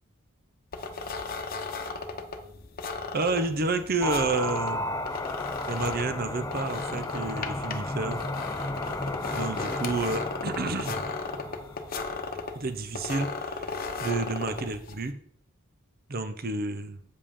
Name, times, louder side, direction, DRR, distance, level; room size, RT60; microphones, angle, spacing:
sound 1, 0.7-15.1, left 4 dB, 45° left, 0.9 m, -36 dB
voice 1, 3.1-5.0 5.7-8.3 9.3-11.0 12.5-15.1 16.1-17.0, right 3 dB, 45° right, 10 dB, 0.8 m, -30 dB
sound 2, 4.0-12.0, left 1 dB, 15° left, 0.4 m, -34 dB
8.5 x 5.4 x 5.5 m, 0.63 s
head